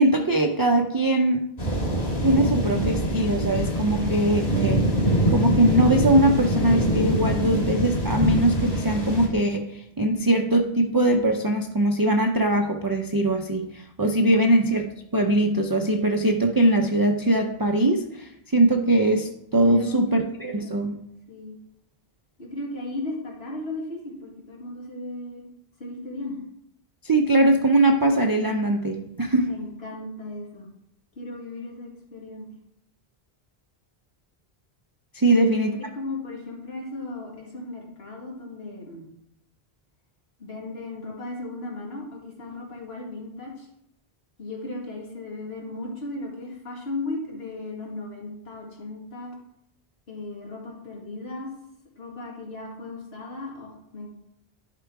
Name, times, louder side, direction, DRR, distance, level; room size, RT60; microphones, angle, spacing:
voice 1, 0.0-1.4 2.2-4.8 5.3-14.9 15.1-21.0 27.0-29.5 35.1-35.8, right 1 dB, 30° right, 3 dB, 0.5 m, -21 dB
sound 1, 1.6-9.3, right 1 dB, 40° left, 1.7 m, -24 dB
voice 2, 19.6-20.7 21.3-21.5 22.4-25.4 25.8-26.4 29.4-30.7 31.2-32.5 35.3-35.4 35.8-39.1 40.4-43.7 44.4-49.4 50.1-51.5 52.0-54.1, left 2 dB, 75° left, -1 dB, 2.1 m, -36 dB
11.0 x 3.8 x 4.6 m, 0.77 s
omnidirectional pair, 1.0 m